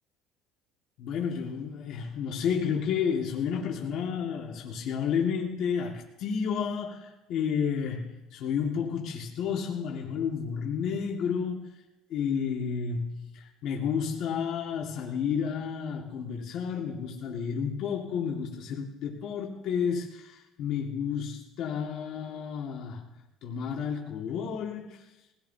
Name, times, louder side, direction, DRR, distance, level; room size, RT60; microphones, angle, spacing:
voice 1, 1.0-11.7 12.1-23.1 23.4-25.0, left 7 dB, 50° left, -2 dB, 2.0 m, -31 dB
22.0 x 18.0 x 2.8 m, 0.99 s
cardioid pair, 175°, 0 cm